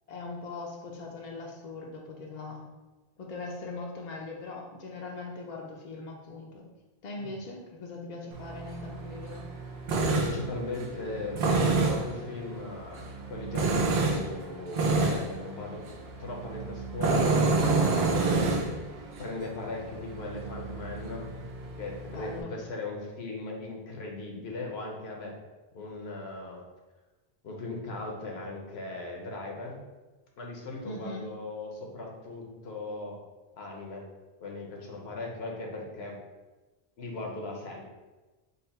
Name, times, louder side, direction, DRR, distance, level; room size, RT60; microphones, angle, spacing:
voice 1, 0.1-2.6 3.2-6.7 7.0-9.4 22.1-22.5 30.8-31.3, left 3 dB, 55° left, -1 dB, 0.5 m, -40 dB
Tools, 8.3-22.4, right 3 dB, 80° right, 0.9 m, -29 dB
voice 2, 9.9-15.8 16.2-18.8 19.2-21.3 21.8-25.4 25.7-26.6 27.4-29.8 30.4-33.2 33.6-34.1 34.4-36.2 37.0-37.8, left 2 dB, 80° left, 0 dB, 1.0 m, -38 dB
3.9 x 2.2 x 4.1 m, 1.2 s
omnidirectional pair, 1.1 m